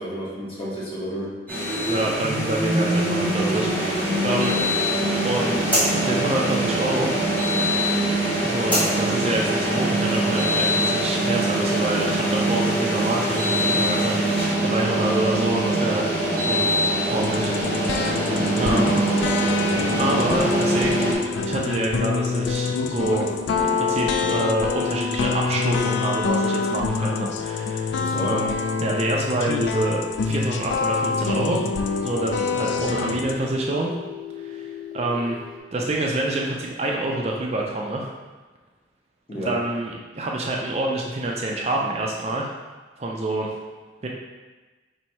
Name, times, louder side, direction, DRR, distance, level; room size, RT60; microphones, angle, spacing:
voice 1, 0.0-1.3 4.4-4.6 18.5-18.9 27.9-28.4 39.3-39.6, equal, 30° left, -7 dB, 1.1 m, -29 dB
sound 1, 1.5-21.1, right 1 dB, 10° left, 1.3 m, -23 dB
voice 2, 1.9-4.5 5.2-7.3 8.4-14.3 14.6-16.1 16.4-16.7 17.1-17.5 17.9-19.0 20.0-23.4 23.7-28.0 28.3-28.5 28.8-31.7 32.0-33.9 34.4-35.4 35.7-38.1 39.4-42.5 43.0-43.5 44.0-44.1, right 1 dB, 35° right, -1 dB, 0.4 m, -27 dB
sound 2, 17.2-33.4, left 4 dB, 80° left, 0.3 m, -26 dB
sound 3, 18.4-35.6, left 6 dB, 65° left, 0.8 m, -40 dB
4.1 x 2.7 x 4.4 m, 1.3 s
head